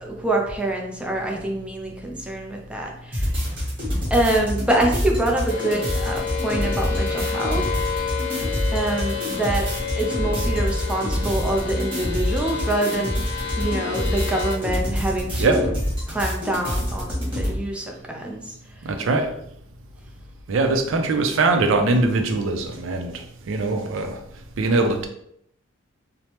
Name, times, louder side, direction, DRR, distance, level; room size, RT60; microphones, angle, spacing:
voice 1, 0.0-3.3 4.1-7.6 7.9-8.0 8.7-9.7 10.0-13.2 13.6-15.7 16.1-18.5, right 1 dB, 5° right, 0 dB, 0.4 m, -25 dB
sound 1, 3.1-17.6, equal, 30° right, 1.2 m, -26 dB
sound 2, 5.5-14.6, left 7 dB, 55° left, 0.4 m, -30 dB
voice 2, 18.8-19.3 20.5-24.2 24.6-25.1, right 3 dB, 90° right, 6 dB, 0.4 m, -22 dB
3.1 x 2.0 x 2.8 m, 0.72 s
head